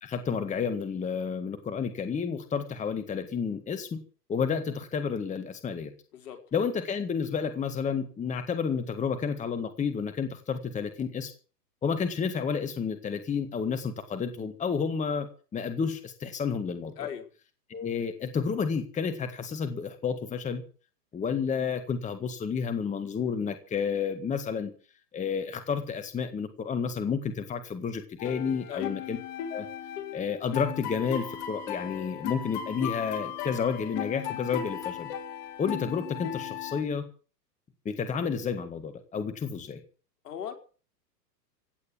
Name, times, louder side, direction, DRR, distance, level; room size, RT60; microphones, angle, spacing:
voice 1, 0.0-4.0 4.3-5.9 6.5-11.3 11.8-15.3 15.5-16.9 17.7-20.6 21.1-24.7 25.1-29.2 29.5-29.7 30.1-35.1 35.6-37.0 37.9-39.8, left 6 dB, 15° left, 8 dB, 1.8 m, -30 dB
voice 2, 6.1-6.4 17.0-17.3 28.7-28.9 40.2-40.5, left 9 dB, 65° left, 5 dB, 4.6 m, -37 dB
sound 1, 28.2-36.8, left 9 dB, 45° left, 3.9 m, -36 dB
16.5 x 9.6 x 8.5 m, 0.39 s
hypercardioid pair, 125°, 50 cm